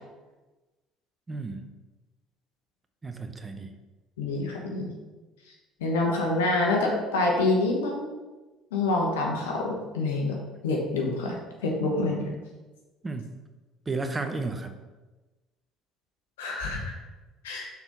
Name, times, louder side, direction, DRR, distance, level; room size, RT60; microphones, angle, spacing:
voice 1, 1.3-1.7 3.0-3.7 13.0-13.3 13.9-14.7, right 3 dB, 25° right, 6 dB, 0.9 m, -33 dB
voice 2, 4.2-4.9 5.8-8.1 8.7-10.3 10.6-11.3 11.6-12.2 16.4-16.9 17.4-17.7, left 2 dB, 85° left, 0 dB, 1.4 m, -26 dB
5.9 x 4.5 x 5.5 m, 1.2 s
hypercardioid pair, 65°, 0 cm